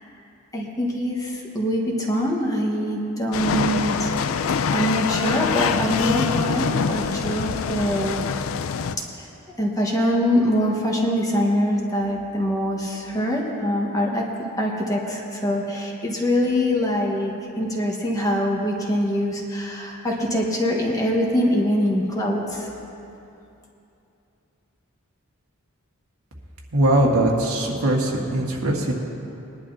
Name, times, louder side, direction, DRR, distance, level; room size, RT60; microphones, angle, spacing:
voice 1, 0.5-4.1 4.7-8.2 9.2-9.3 9.6-14.3 14.6-22.7, equal, 15° left, -2 dB, 1.3 m, -23 dB
sound 1, 3.3-8.9, left 6 dB, 65° left, 0.4 m, -24 dB
voice 2, 26.7-28.9, right 1 dB, 80° right, -1 dB, 1.7 m, -21 dB
20.5 x 11.0 x 2.8 m, 2.8 s
head